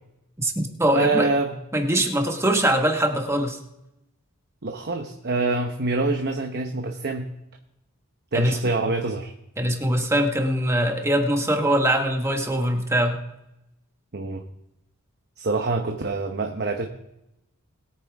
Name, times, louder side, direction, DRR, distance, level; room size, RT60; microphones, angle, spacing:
voice 1, 0.4-1.3 1.7-3.6 8.3-8.6 9.6-13.2, right 1 dB, 10° right, 3 dB, 1.5 m, -22 dB
voice 2, 0.9-1.6 4.6-7.3 8.3-9.3 14.1-14.4 15.4-16.9, right 3 dB, 50° right, 4 dB, 1.0 m, -25 dB
21.0 x 8.8 x 3.5 m, 0.87 s
head